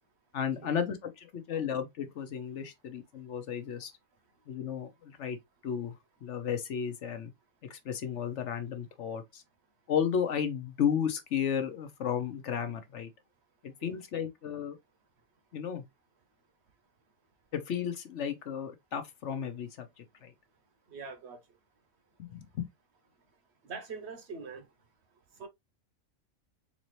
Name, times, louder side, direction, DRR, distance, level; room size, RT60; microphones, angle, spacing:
voice 1, 0.3-3.9 4.5-5.4 5.6-6.0 6.2-7.3 7.7-9.4 9.9-13.1 13.6-14.8 15.5-15.8 17.5-20.3 22.2-22.7, left 8 dB, 65° left, 1.0 m, -33 dB
voice 2, 20.9-21.4 23.6-24.7 25.4-25.5, right 4 dB, 60° right, 0.9 m, -43 dB
4.1 x 2.7 x 3.0 m
omnidirectional pair, 1.4 m